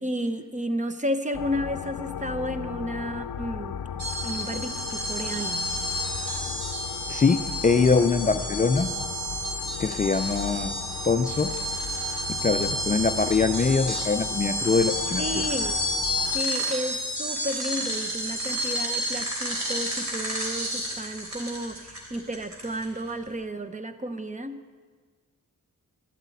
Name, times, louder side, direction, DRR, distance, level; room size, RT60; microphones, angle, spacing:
voice 1, 0.0-3.9 4.2-5.6 15.2-15.8 16.3-24.6, equal, 20° right, 9 dB, 0.7 m, -32 dB
sound 1, 1.3-16.4, left 8 dB, 90° left, 0.5 m, -36 dB
sound 2, 4.0-23.1, equal, 55° right, 3.3 m, -31 dB
voice 2, 7.1-8.9 9.8-10.7 11.0-11.5 12.4-15.4, left 4 dB, 25° left, 8 dB, 0.4 m, -23 dB
12.0 x 8.0 x 8.2 m, 1.5 s
wide cardioid pair, 110°, 34 cm